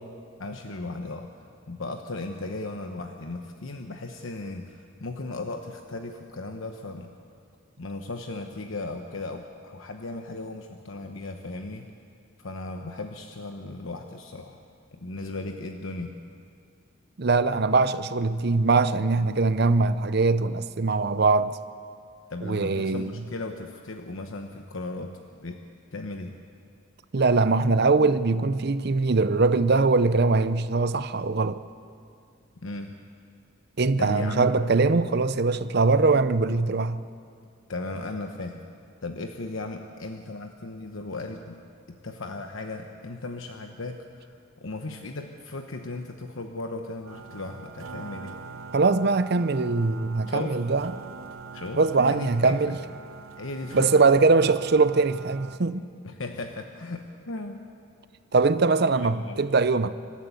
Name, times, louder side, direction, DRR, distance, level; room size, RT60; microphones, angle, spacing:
voice 1, 0.4-7.1 7.8-11.9 12.4-14.7 14.9-16.1 22.3-25.6 25.9-26.4 32.6-33.0 34.0-34.5 37.7-38.6 39.0-41.6 42.0-44.3 44.6-48.4 50.3-50.6 51.5-52.8 53.4-54.0 56.0-57.6 58.9-59.4, left 2 dB, 75° left, 1.1 m, -36 dB
voice 2, 17.2-21.6 22.4-23.1 27.1-31.6 33.8-37.0 48.7-50.9 51.8-52.8 53.7-55.8 58.3-59.9, right 3 dB, 50° right, 0.6 m, -22 dB
sound 1, 47.1-55.6, right 4 dB, 85° right, 0.8 m, -43 dB
25.5 x 13.0 x 8.3 m
head